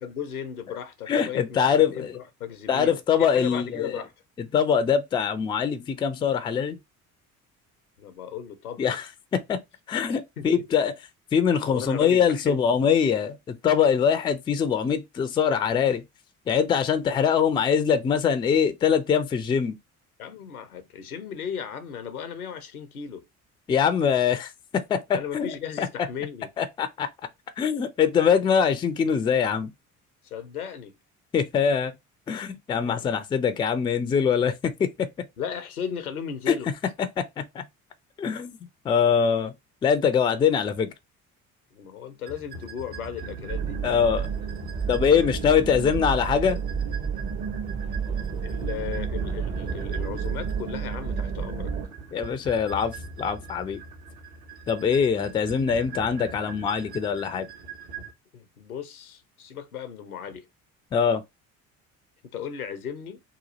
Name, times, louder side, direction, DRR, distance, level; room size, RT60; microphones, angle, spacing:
voice 1, 0.0-4.1 8.0-8.9 10.4-10.6 11.7-12.9 20.2-23.2 25.1-26.5 30.2-31.0 32.8-33.2 35.4-36.7 41.7-43.8 48.4-51.7 58.3-60.5 62.2-63.2, left 8 dB, 85° left, 0.6 m, -36 dB
voice 2, 1.1-2.1 2.7-4.0 4.5-6.8 8.8-9.1 9.3-9.6 9.9-10.9 11.3-16.0 16.5-19.8 23.7-25.5 25.8-25.9 26.6-27.1 27.6-29.7 31.3-31.9 32.3-35.1 36.5-36.6 37.2-37.6 38.2-38.6 38.8-39.5 39.8-40.9 43.8-44.3 44.9-46.6 52.1-53.8 54.7-57.5 60.9-61.2, left 7 dB, 15° left, 0.3 m, -23 dB
sound 1, 42.3-58.1, right 4 dB, 65° right, 1.0 m, -41 dB
sound 2, 43.5-51.9, right 6 dB, 30° right, 0.6 m, -30 dB
2.9 x 2.3 x 4.0 m
figure-of-eight pair, 55°, 43 cm